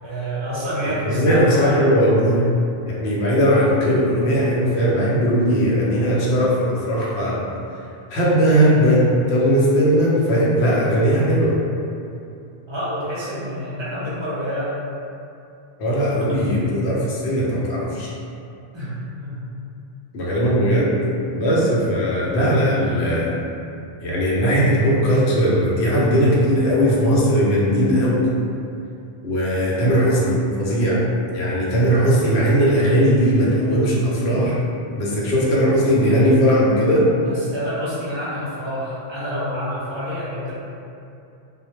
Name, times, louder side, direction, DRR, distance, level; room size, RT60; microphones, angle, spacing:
voice 1, 0.0-1.9 12.7-14.7 16.5-16.6 18.7-19.5 36.1-36.3 37.2-40.5, equal, 35° right, -9 dB, 0.5 m, -27 dB
voice 2, 1.1-2.5 2.8-7.4 8.1-11.6 15.8-18.1 20.1-21.0 21.3-23.4 24.0-28.3 29.2-31.0 31.3-34.6 35.0-37.1, equal, 80° left, -6 dB, 0.9 m, -18 dB
2.1 x 2.1 x 2.9 m, 2.6 s
omnidirectional pair, 1.1 m